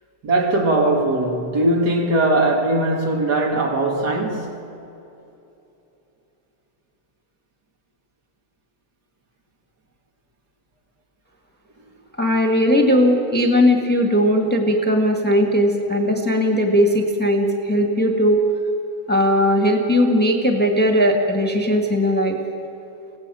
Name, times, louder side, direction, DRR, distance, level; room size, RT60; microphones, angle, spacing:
voice 1, 0.2-4.6, right 2 dB, 55° right, 2.3 m, -20 dB
voice 2, 12.2-18.4 19.1-22.4, equal, 5° left, 1.7 m, -18 dB
25.0 x 17.5 x 6.4 m
omnidirectional pair, 2.1 m